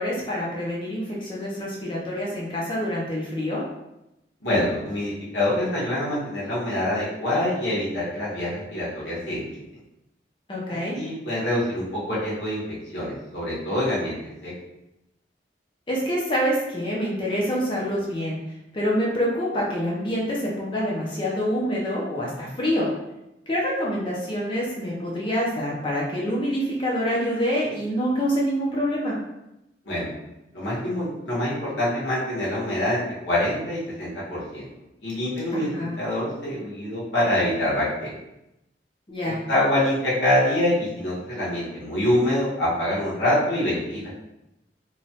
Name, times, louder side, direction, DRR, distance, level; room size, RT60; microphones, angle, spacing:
voice 1, 0.0-3.6 10.5-11.0 15.9-18.4 18.7-22.9 23.5-29.1 35.5-35.9 39.1-39.4, equal, 30° left, -4 dB, 0.5 m, -26 dB
voice 2, 4.4-9.6 10.9-14.2 14.4-14.5 29.8-30.1 30.5-34.7 35.0-35.7 36.0-38.1 39.2-44.1, left 1 dB, 80° left, -8 dB, 1.3 m, -25 dB
3.0 x 2.3 x 2.7 m, 0.90 s
head